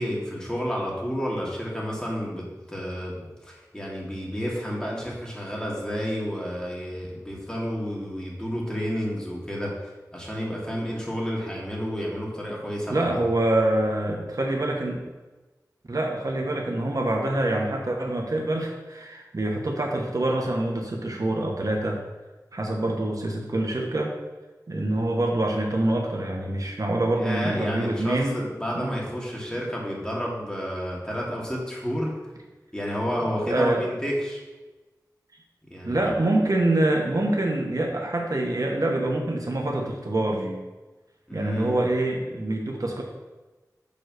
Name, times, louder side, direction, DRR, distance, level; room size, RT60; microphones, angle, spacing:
voice 1, 0.0-9.8 10.1-13.1 27.1-32.1 32.7-34.4 35.7-36.1 41.3-41.8, equal, 10° left, -4 dB, 2.5 m, -30 dB
voice 2, 12.9-15.0 15.9-22.0 22.5-24.1 24.7-28.4 28.7-29.0 33.5-33.8 35.8-40.6 41.3-43.0, right 1 dB, 60° right, 0 dB, 1.2 m, -25 dB
6.9 x 4.0 x 6.5 m, 1.2 s
wide cardioid pair, 40°, 7 cm